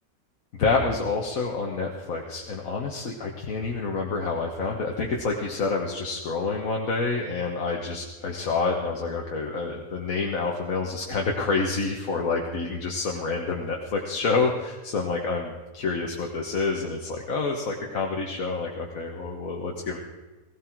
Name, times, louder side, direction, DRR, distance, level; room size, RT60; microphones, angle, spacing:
voice 1, 0.6-20.0, left 4 dB, 75° left, 0 dB, 1.7 m, -28 dB
17.0 x 17.0 x 4.6 m, 1.2 s
omnidirectional pair, 1.5 m